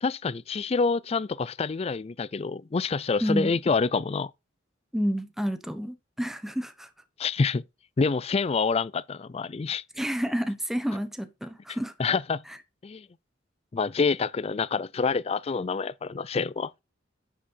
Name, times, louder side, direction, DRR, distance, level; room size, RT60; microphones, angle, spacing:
voice 1, 0.0-4.3 7.2-7.6 8.0-9.8 12.0-12.4 12.8-13.1 13.7-16.7, left 4 dB, 30° left, 0.4 m, -27 dB
voice 2, 3.2-3.5 4.9-6.9 10.0-11.9 12.5-12.6, equal, ahead, 0.8 m, -29 dB
9.7 x 6.3 x 3.8 m
head